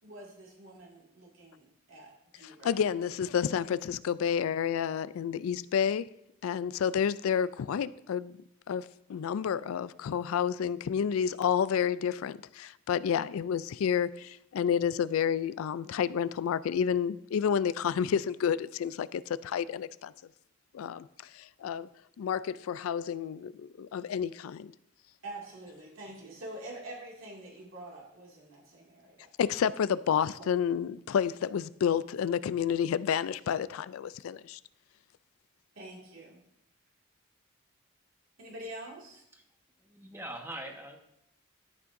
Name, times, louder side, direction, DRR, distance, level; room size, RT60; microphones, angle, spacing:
voice 1, 0.0-2.7 25.2-29.3 30.3-30.5 35.8-36.4 38.4-39.2, right 1 dB, 80° right, 2.3 m, -46 dB
voice 2, 2.4-6.1 6.4-8.4 8.7-20.1 20.7-21.1 21.3-21.9 22.2-24.7 29.4-34.6, left 8 dB, 90° left, 0.3 m, -30 dB
voice 3, 39.8-41.0, right 1 dB, 10° right, 1.2 m, -42 dB
13.0 x 8.3 x 2.6 m
head